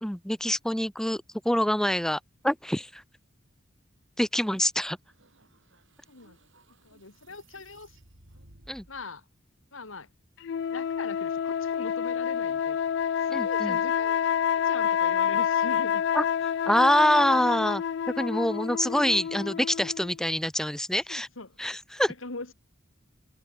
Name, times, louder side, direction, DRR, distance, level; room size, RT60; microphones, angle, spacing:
voice 1, 0.0-3.0 4.2-5.0 8.7-8.8 13.3-13.8 16.1-16.2 16.7-17.8 18.2-21.3 21.6-22.1, equal, 5° left, 0.8 m, -25 dB
sound 1, 5.0-9.1, right 1 dB, 70° right, 6.9 m, -58 dB
voice 2, 6.1-6.4 6.8-8.0 8.9-9.2 9.7-10.1 10.7-12.8 13.2-14.2 14.6-16.0 21.1-21.6 22.1-22.5, left 3 dB, 90° left, 2.6 m, -41 dB
sound 2, 10.4-20.1, left 8 dB, 60° left, 0.3 m, -28 dB
head